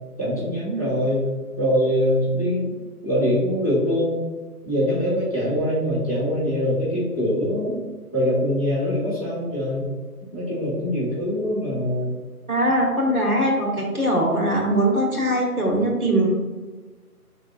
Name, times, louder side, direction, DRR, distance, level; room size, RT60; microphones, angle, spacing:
voice 1, 0.2-1.3 1.6-2.7 3.0-4.2 4.6-7.8 8.1-9.9 10.3-12.1, equal, 25° left, -9 dB, 1.1 m, -23 dB
voice 2, 12.5-16.3, right 1 dB, 65° right, -1 dB, 1.4 m, -21 dB
5.6 x 3.6 x 2.4 m, 1.3 s
figure-of-eight pair, 165°, 46 cm